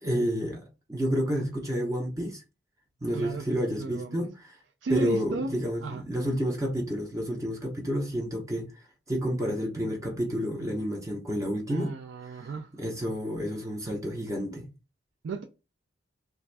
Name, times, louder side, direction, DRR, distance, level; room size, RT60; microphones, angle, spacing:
voice 1, 0.0-2.4 3.0-4.6 4.9-11.9 12.2-12.5 12.8-14.7, equal, 15° right, 0.6 m, -30 dB
voice 2, 3.1-4.2 4.8-5.5 5.8-6.0 11.7-12.7 15.2-15.4, right 4 dB, 65° right, 0.4 m, -34 dB
3.4 x 2.5 x 3.2 m
head